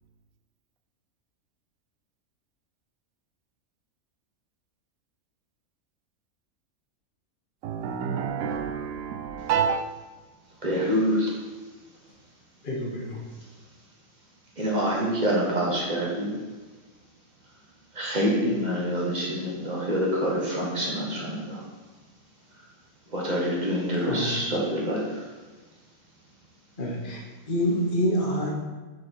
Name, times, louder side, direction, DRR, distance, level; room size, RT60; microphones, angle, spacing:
voice 1, 7.6-9.8, right 7 dB, 75° right, 1.0 m, -28 dB
voice 2, 10.6-11.4 14.6-16.4 17.9-21.7 23.1-25.3, equal, 30° right, 1.5 m, -26 dB
voice 3, 12.6-13.2 24.0-24.3 26.8-27.2 27.5-28.5, equal, 40° left, 1.4 m, -26 dB
6.5 x 4.4 x 4.6 m
omnidirectional pair, 1.5 m